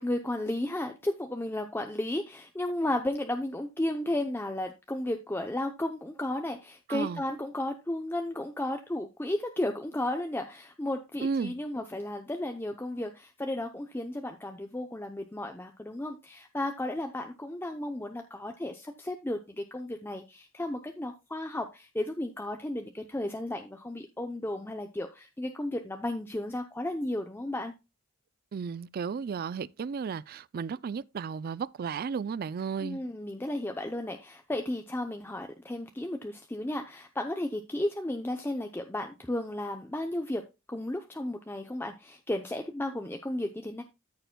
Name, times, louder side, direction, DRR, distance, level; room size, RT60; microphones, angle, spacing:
voice 1, 0.0-27.7 32.8-40.4 40.7-43.8, left 1 dB, 10° left, 0.6 m, -34 dB
voice 2, 6.9-7.2 11.2-11.5 28.5-33.0, right 6 dB, 45° right, 0.3 m, -34 dB
13.5 x 6.6 x 2.2 m
head